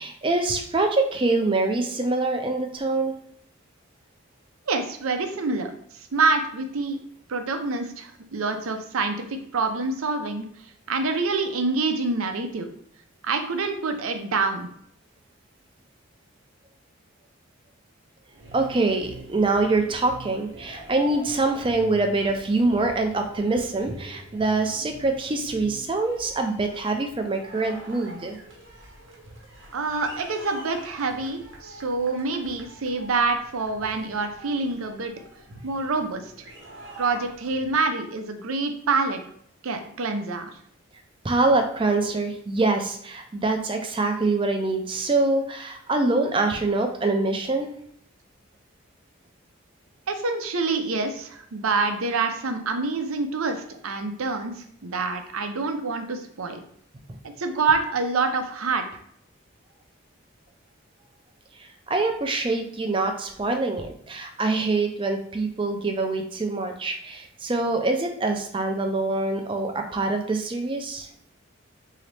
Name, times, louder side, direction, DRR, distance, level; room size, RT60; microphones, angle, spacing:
voice 1, 0.0-3.1 18.5-28.4 41.2-47.7 61.9-71.1, right 3 dB, 25° right, 5 dB, 0.4 m, -25 dB
voice 2, 4.7-5.7 6.1-7.0 7.3-10.4 10.9-12.7 13.2-14.7 29.7-35.1 35.6-36.3 37.0-39.2 39.6-40.5 50.1-54.5 54.8-56.6 57.2-58.8, right 4 dB, 90° right, 6 dB, 0.6 m, -26 dB
sound 1, 18.3-37.8, right 1 dB, 60° right, 0.9 m, -45 dB
3.9 x 2.8 x 3.3 m, 0.66 s
head